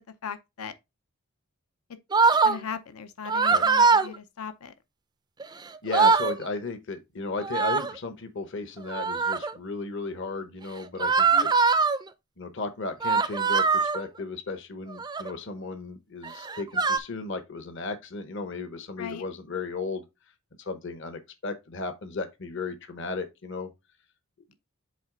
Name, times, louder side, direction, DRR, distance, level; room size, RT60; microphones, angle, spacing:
voice 1, 0.2-0.7 2.4-4.7 11.3-11.5 19.0-19.2, left 6 dB, 80° left, 0.6 m, -38 dB
sound 1, 2.1-2.6 3.3-4.1 5.4-5.5 5.7-6.4 7.4-8.0 8.9-9.5 11.0-12.0 13.0-14.0 14.9-15.3 16.2-17.0, right 4 dB, 20° right, 0.4 m, -22 dB
voice 2, 5.8-11.5 12.4-20.0 20.6-23.7, left 3 dB, 55° left, 0.9 m, -35 dB
7.8 x 3.3 x 3.7 m
head